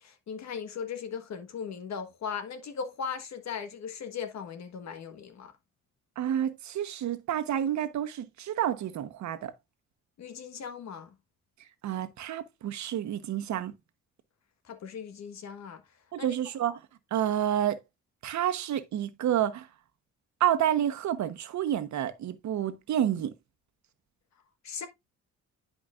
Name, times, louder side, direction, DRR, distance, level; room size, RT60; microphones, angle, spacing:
voice 1, 0.0-5.5 10.2-11.1 14.6-15.8 16.2-16.3 24.6-24.9, left 6 dB, 65° left, 1.5 m, -38 dB
voice 2, 6.2-9.5 11.8-13.7 16.1-16.8 17.1-17.8 18.2-19.7 20.4-23.3, right 10 dB, 70° right, 1.1 m, -29 dB
10.5 x 5.0 x 2.5 m
cardioid pair, 90°, 30 cm